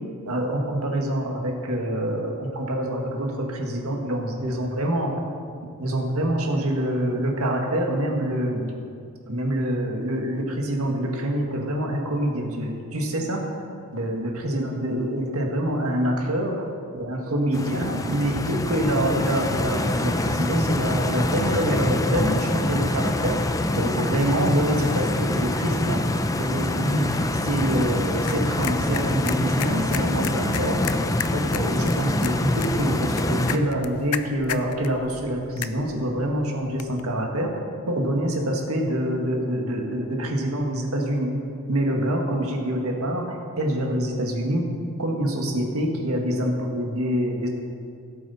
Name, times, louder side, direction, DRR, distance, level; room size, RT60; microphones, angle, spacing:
voice 1, 0.2-5.1 5.8-8.6 9.3-13.6 13.9-16.7 16.9-26.0 26.3-27.1 27.4-30.8 31.3-37.6 37.9-41.3 41.7-44.7 45.0-47.5, right 1 dB, 70° right, 1 dB, 1.7 m, -26 dB
Stream, 17.5-33.6, left 1 dB, 15° left, 0.4 m, -25 dB
sound 1, 27.5-37.0, left 9 dB, 85° left, 0.5 m, -36 dB
17.0 x 7.5 x 4.2 m, 2.4 s
head